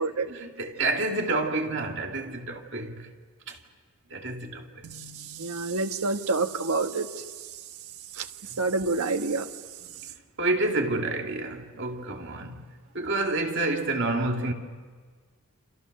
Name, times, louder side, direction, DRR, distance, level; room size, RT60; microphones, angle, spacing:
voice 1, 0.3-3.1 3.5-3.6 4.1-4.9 8.5-8.7 10.4-12.7 12.9-14.5, right 2 dB, 55° right, 2.4 m, -29 dB
voice 2, 4.8-7.1 8.2-8.3 8.6-9.5, right 3 dB, 90° right, 1.4 m, -28 dB
29.0 x 27.0 x 6.6 m
head